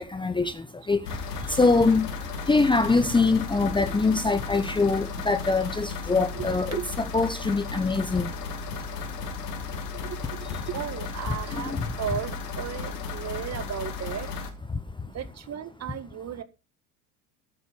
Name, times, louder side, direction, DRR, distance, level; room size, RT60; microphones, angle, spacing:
voice 1, 0.0-6.8 7.1-8.3 11.6-11.9 14.7-14.8, left 3 dB, 10° left, 0.9 m, -24 dB
sound 1, 1.1-14.5, left 4 dB, 75° left, 2.5 m, -35 dB
voice 2, 10.0-14.3 15.1-16.4, right 9 dB, 35° right, 1.6 m, -35 dB
13.5 x 7.8 x 6.9 m
hypercardioid pair, 75°, 48 cm